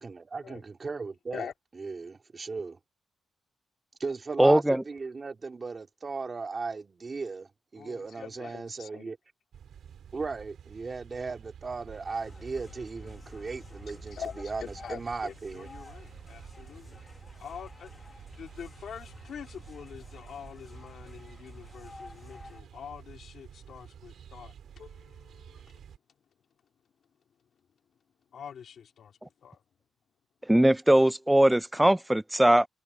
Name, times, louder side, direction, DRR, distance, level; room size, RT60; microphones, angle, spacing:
voice 1, 0.0-1.5 1.8-2.8 4.0-9.2 10.1-15.7, right 4 dB, 30° right, 3.0 m, -37 dB
voice 2, 4.4-4.8 30.5-32.7, right 1 dB, 5° right, 0.4 m, -20 dB
voice 3, 7.8-9.1 14.1-17.0 17.4-25.8 28.3-29.6, left 8 dB, 60° left, 2.9 m, -45 dB
sound 1, 9.5-26.0, right 8 dB, 70° right, 2.9 m, -50 dB
sound 2, 11.9-22.6, left 3 dB, 20° left, 1.6 m, -51 dB
wide cardioid pair, 155°, 0 cm